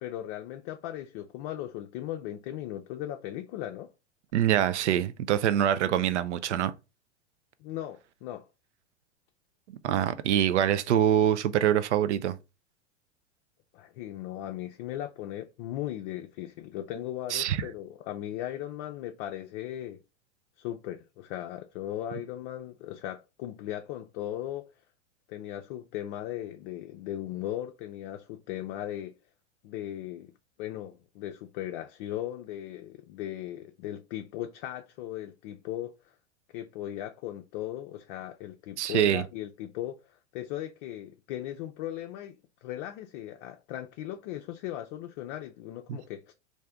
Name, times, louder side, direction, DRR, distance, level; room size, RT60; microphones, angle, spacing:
voice 1, 0.0-3.9 7.6-8.5 13.7-20.0 20.6-24.7 25.3-29.1 29.6-30.3 30.6-35.9 36.5-46.3, left 12 dB, 45° left, 0.5 m, -37 dB
voice 2, 4.3-6.7 9.8-12.4 17.3-17.6 38.8-39.3 45.9-46.0, right 10 dB, 75° right, 0.6 m, -25 dB
3.3 x 2.6 x 3.5 m
hypercardioid pair, 105°, 35 cm